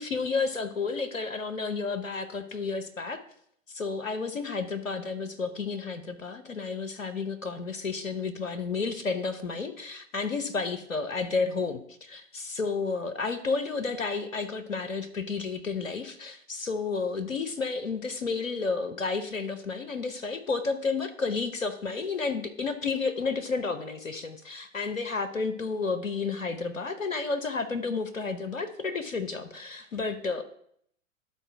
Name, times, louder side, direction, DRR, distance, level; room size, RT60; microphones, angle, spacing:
voice 1, 0.0-3.2 3.7-30.4, left 4 dB, 90° left, 10 dB, 0.8 m, -31 dB
11.5 x 4.1 x 4.6 m, 0.67 s
figure-of-eight pair, 95°, 38 cm